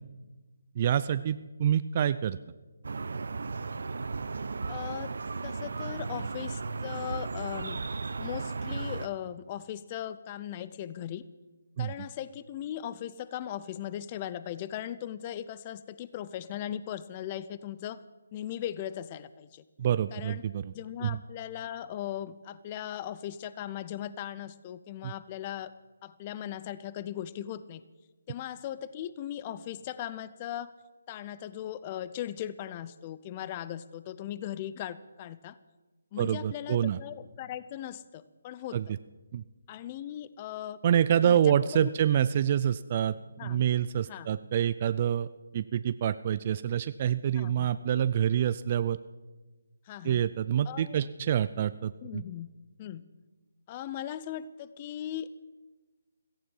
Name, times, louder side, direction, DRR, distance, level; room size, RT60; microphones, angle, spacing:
voice 1, 0.8-2.4 11.8-11.9 19.8-20.7 21.0-21.2 25.0-25.1 36.2-37.0 38.7-38.9 39.3-39.4 40.8-45.3 45.5-49.0 50.0-52.2, right 9 dB, 35° right, 14 dB, 0.4 m, -27 dB
sound 1, 2.8-9.1, right 4 dB, 70° right, 0.8 m, -35 dB
voice 2, 4.7-5.1 5.4-7.8 8.2-11.2 11.8-18.0 18.3-19.6 20.1-20.4 20.7-25.7 26.0-27.8 28.3-30.7 31.1-35.6 36.1-38.8 39.7-40.8 41.2-41.9 43.4-43.6 44.1-44.3 47.3-47.7 49.9-50.2 50.6-51.0 52.0-52.5 52.8-53.0 53.7-55.3, left 11 dB, 30° left, 16 dB, 0.6 m, -38 dB
17.0 x 14.5 x 5.5 m, 1.2 s
figure-of-eight pair, 155°, 0 cm